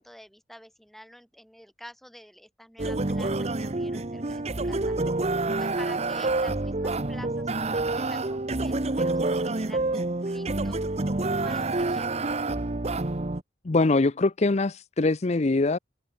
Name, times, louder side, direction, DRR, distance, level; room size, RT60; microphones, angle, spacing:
voice 1, 0.0-4.9 5.6-10.8 11.4-12.1, equal, ahead, 6.5 m, -48 dB
sound 1, 2.8-13.4, right 2 dB, 35° right, 1.0 m, -28 dB
voice 2, 13.6-15.8, left 3 dB, 40° left, 0.6 m, -23 dB
open air
head